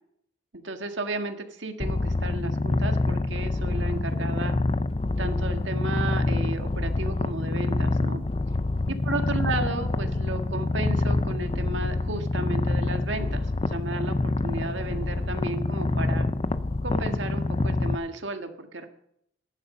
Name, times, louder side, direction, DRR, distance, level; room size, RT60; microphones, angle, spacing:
voice 1, 0.5-4.5 5.2-8.2 8.9-16.3 16.8-18.9, right 2 dB, 90° right, 6 dB, 1.6 m, -33 dB
Purr, 1.8-18.0, left 2 dB, 30° left, 0.5 m, -26 dB
14.0 x 11.0 x 5.4 m, 0.73 s
head